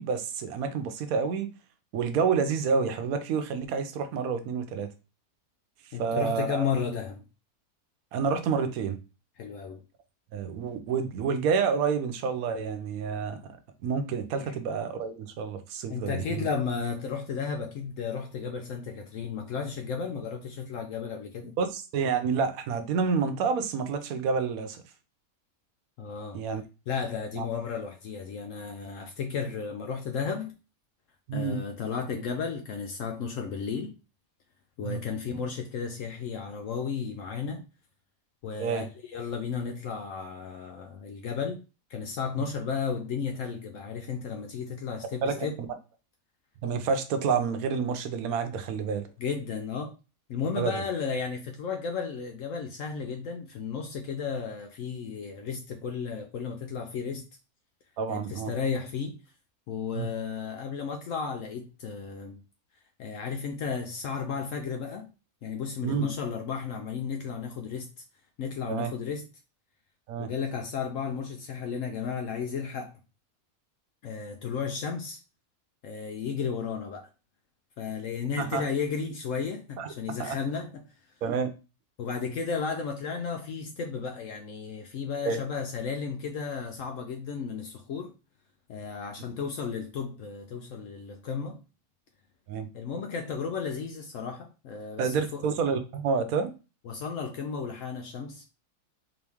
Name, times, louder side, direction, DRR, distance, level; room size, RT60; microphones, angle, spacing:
voice 1, 0.0-1.5 1.9-4.9 6.0-6.7 8.1-9.0 10.3-13.4 13.8-16.5 21.6-24.8 26.3-26.6 27.3-27.4 31.3-31.6 34.8-35.0 38.6-38.9 45.2-45.5 46.6-49.1 50.6-50.7 58.0-58.5 59.9-60.1 65.8-66.1 68.7-68.9 70.1-70.3 78.4-78.6 79.8-80.4 81.2-81.5 85.3-85.4 92.5-92.7 95.0-96.5, right 5 dB, 75° right, 1.1 m, -29 dB
voice 2, 5.9-7.2 9.4-9.8 14.4-14.5 15.9-21.5 26.0-26.4 26.9-30.5 31.3-34.0 34.8-37.6 38.4-41.6 41.9-45.6 49.2-49.9 50.3-57.2 58.1-59.2 59.7-62.4 63.0-65.1 65.4-67.9 68.4-69.2 70.2-72.9 74.0-75.2 75.8-77.1 77.8-80.8 82.0-88.1 88.7-91.6 92.7-95.5 96.8-98.4, left 6 dB, 70° left, 0.9 m, -33 dB
3.8 x 3.0 x 3.4 m
omnidirectional pair, 1.5 m